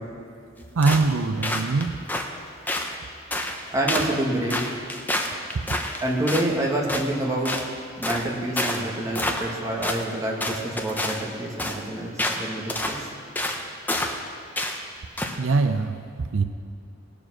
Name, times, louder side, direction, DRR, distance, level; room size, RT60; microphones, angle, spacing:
sound 1, 0.8-1.1 1.4-2.3 2.7-2.9 3.3-3.6 3.9-4.1 4.5-6.5 6.9-7.1 7.4-7.7 8.0-8.3 8.6-8.8 9.1-9.6 9.8-10.0 10.4-11.2 11.6-11.8 12.2-12.4 12.7-13.0 13.4-13.6 13.9-14.2 14.6-14.8 15.2-15.4, left 1 dB, 10° left, 0.8 m, -28 dB
voice 1, 0.8-2.0 15.4-16.4, right 3 dB, 85° right, 9 dB, 0.6 m, -23 dB
voice 2, 3.7-4.6 6.0-7.6 8.0-13.1, right 1 dB, 15° right, -2 dB, 1.8 m, -27 dB
18.5 x 7.2 x 6.2 m, 2.4 s
head